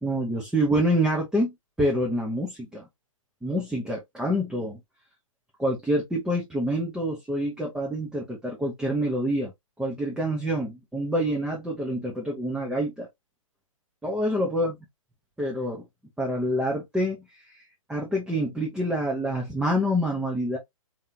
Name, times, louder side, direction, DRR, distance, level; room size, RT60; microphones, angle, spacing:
voice 1, 0.0-2.9 3.4-4.8 5.6-9.5 9.8-13.1 14.0-14.7 15.4-15.8 16.2-17.6 17.9-20.6, equal, 5° right, 1.1 m, -27 dB
4.6 x 3.5 x 2.7 m
figure-of-eight pair, 120°, 18 cm